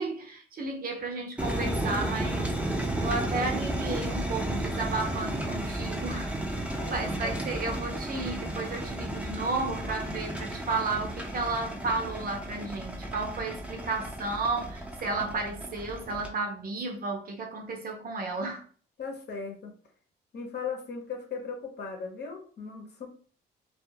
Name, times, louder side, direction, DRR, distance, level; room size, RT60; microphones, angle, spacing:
voice 1, 0.0-2.6 3.0-18.6, right 3 dB, 45° right, 0.8 m, -33 dB
sound 1, 1.4-16.3, right 1 dB, 5° right, 0.6 m, -33 dB
voice 2, 6.7-7.5 19.0-19.7 20.3-23.1, left 5 dB, 55° left, 0.8 m, -38 dB
2.4 x 2.4 x 2.8 m
cardioid pair, 90°, 20 cm